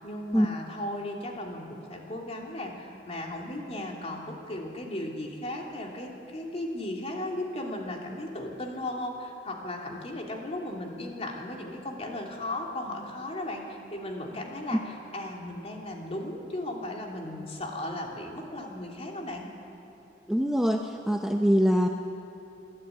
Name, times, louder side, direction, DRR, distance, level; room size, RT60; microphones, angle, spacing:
voice 1, 0.0-19.5, left 1 dB, 35° left, 0 dB, 2.9 m, -36 dB
voice 2, 20.3-21.9, equal, 5° right, 3 dB, 0.7 m, -23 dB
24.5 x 12.0 x 9.2 m, 2.9 s
head